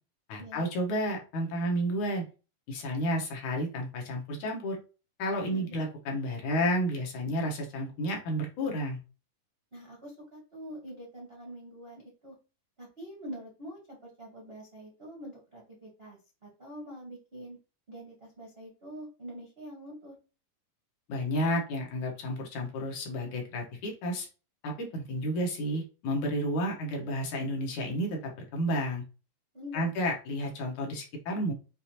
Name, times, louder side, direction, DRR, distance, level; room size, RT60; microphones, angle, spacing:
voice 1, 0.3-2.3 2.7-4.8 5.2-9.0 21.1-24.3 24.6-29.0 29.7-31.5, equal, 65° left, 0 dB, 2.5 m, -31 dB
voice 2, 5.5-5.8 9.7-12.3 12.8-17.6 17.9-20.1 29.5-29.9, equal, 90° right, -4 dB, 0.5 m, -45 dB
6.7 x 2.8 x 2.9 m, 0.33 s
omnidirectional pair, 3.9 m